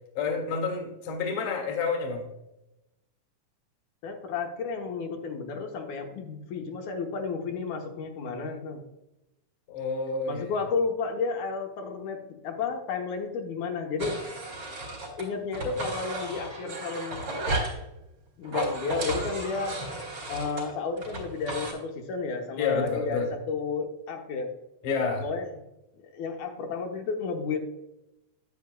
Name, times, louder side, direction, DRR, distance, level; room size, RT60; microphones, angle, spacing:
voice 1, 0.2-2.2 9.7-10.6 22.6-23.3 24.8-25.2, left 5 dB, 55° left, 2 dB, 2.1 m, -29 dB
voice 2, 4.0-8.8 10.3-14.1 15.2-17.2 18.4-19.8 20.3-24.5 25.2-25.5 26.1-27.6, left 4 dB, 75° left, 3 dB, 2.3 m, -32 dB
sound 1, 14.0-15.2 15.5-17.8 18.4-21.7, right 2 dB, 40° right, 3.0 m, -33 dB
9.5 x 8.3 x 2.2 m, 0.93 s
omnidirectional pair, 3.5 m